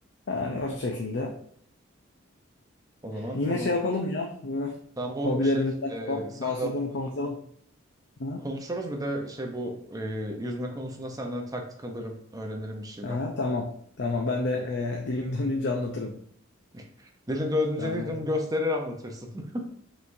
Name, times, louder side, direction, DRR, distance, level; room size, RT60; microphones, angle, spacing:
voice 1, 0.3-1.3 3.1-4.8 5.2-7.4 8.2-8.4 13.0-13.7 14.0-16.2 17.8-18.1, left 2 dB, 60° left, 1 dB, 0.5 m, -29 dB
voice 2, 3.0-3.7 5.0-5.6 5.9-6.7 8.4-13.2 16.7-19.7, left 1 dB, 20° right, 3 dB, 0.6 m, -32 dB
5.5 x 3.1 x 2.6 m, 0.63 s
head